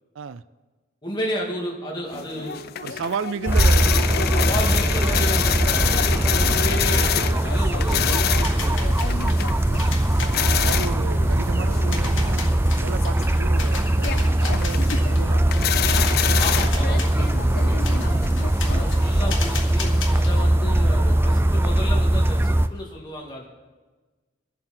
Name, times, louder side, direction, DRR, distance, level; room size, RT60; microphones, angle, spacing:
voice 1, 1.0-2.7 4.3-9.2 16.4-17.8 18.7-23.5, equal, 25° left, -2 dB, 2.4 m, -33 dB
sound 1, 2.1-20.0, left 8 dB, 55° left, 0.5 m, -28 dB
voice 2, 2.8-3.9 10.2-12.5 12.8-16.7 18.1-18.6, right 6 dB, 75° right, 16 dB, 0.4 m, -34 dB
sound 2, 3.5-22.7, right 1 dB, 10° right, 0.4 m, -21 dB
sound 3, 7.9-20.6, left 5 dB, 75° left, 1.8 m, -37 dB
22.5 x 7.6 x 4.4 m, 1.3 s
head